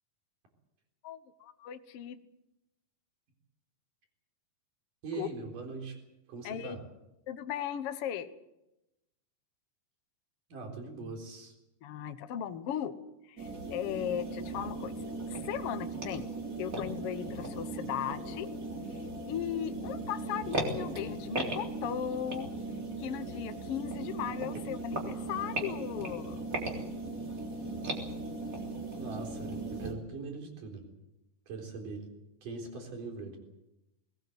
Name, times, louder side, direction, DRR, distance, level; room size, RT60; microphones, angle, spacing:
voice 1, 1.0-2.2 5.1-5.3 6.4-6.8 7.3-8.3 11.8-12.9 13.3-14.9 15.3-16.2 16.6-18.5 19.3-22.5 23.0-26.4, left 10 dB, 65° left, 10 dB, 1.5 m, -37 dB
voice 2, 5.0-6.0 6.3-6.8 10.5-11.5 29.0-30.9 31.5-32.1 32.4-33.4, right 4 dB, 65° right, 2 dB, 5.5 m, -41 dB
sound 1, 13.4-29.9, right 2 dB, 25° right, 3.6 m, -38 dB
21.0 x 19.5 x 8.0 m, 0.91 s
omnidirectional pair, 4.1 m